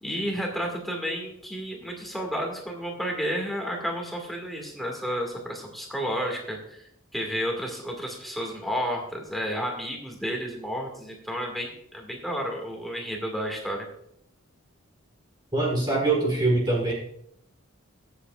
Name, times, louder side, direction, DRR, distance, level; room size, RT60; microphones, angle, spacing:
voice 1, 0.0-13.9, equal, ahead, 0 dB, 2.0 m, -31 dB
voice 2, 15.5-16.9, right 2 dB, 20° right, -2 dB, 1.6 m, -23 dB
21.0 x 7.9 x 2.5 m, 0.73 s
head